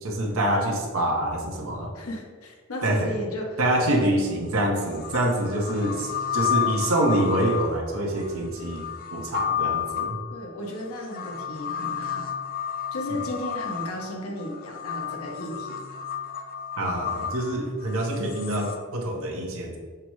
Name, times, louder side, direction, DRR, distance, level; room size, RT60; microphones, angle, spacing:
voice 1, 0.0-1.9 2.8-3.1 3.6-8.8 9.1-10.2 16.8-19.8, right 1 dB, 65° right, -1 dB, 0.7 m, -26 dB
voice 2, 1.9-3.6 3.9-4.1 10.3-12.3 12.9-15.8, left 1 dB, 80° left, 0 dB, 0.9 m, -34 dB
sound 1, 4.3-4.4 4.9-18.8, left 8 dB, 40° left, 0.4 m, -32 dB
5.8 x 2.0 x 4.6 m, 1.5 s
head